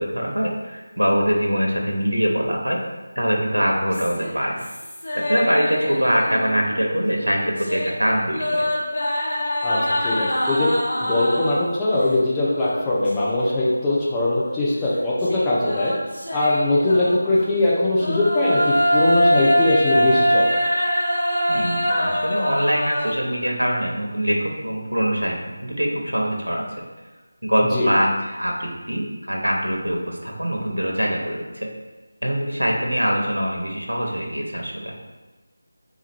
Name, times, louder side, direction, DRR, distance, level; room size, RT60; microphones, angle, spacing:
voice 1, 0.0-2.8 3.1-4.6 5.1-8.7 21.5-26.8 27.4-31.7 32.2-35.0, equal, 85° right, -1 dB, 0.9 m, -23 dB
sound 1, 3.9-6.8 7.1-11.8 12.5-13.5 13.9-14.0 15.2-17.4 17.9-23.1, equal, 55° left, 1.3 m, -24 dB
voice 2, 10.0-10.7 11.0-15.9 16.3-20.4 27.7-27.9, left 2 dB, 10° left, -7 dB, 0.7 m, -21 dB
3.6 x 3.0 x 4.3 m, 1.2 s
figure-of-eight pair, 165°, 0 cm